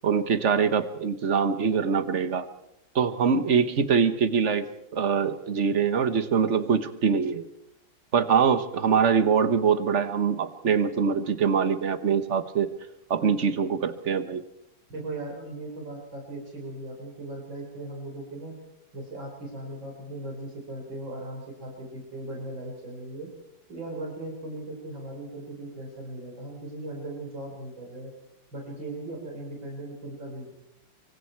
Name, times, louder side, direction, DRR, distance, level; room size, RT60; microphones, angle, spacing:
voice 1, 0.0-2.5 2.9-7.5 8.1-12.7 13.1-14.4, right 6 dB, 40° right, 11 dB, 1.4 m, -24 dB
voice 2, 14.9-18.6 18.9-23.3 23.7-28.1 28.5-30.5, right 2 dB, 80° right, 0 dB, 5.2 m, -38 dB
25.5 x 24.5 x 4.6 m, 0.82 s
omnidirectional pair, 2.1 m